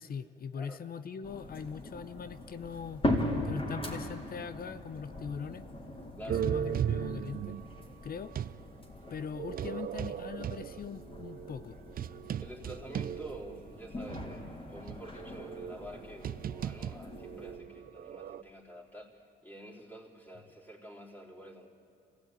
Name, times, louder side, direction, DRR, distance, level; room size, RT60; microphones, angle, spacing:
voice 1, 0.0-3.0 3.4-5.6 6.3-7.6 8.0-8.3 9.1-11.8, left 6 dB, 50° left, 13 dB, 0.9 m, -41 dB
sound 1, 1.2-17.6, left 1 dB, 30° left, 3.7 m, -40 dB
sound 2, 6.3-8.6 9.3-13.7 14.1-14.2 14.9-18.4, right 9 dB, 45° right, 0.5 m, -37 dB
voice 2, 12.4-21.7, right 1 dB, 10° left, -3 dB, 4.1 m, -48 dB
26.5 x 17.0 x 9.5 m, 2.7 s
cardioid pair, 90°, 20 cm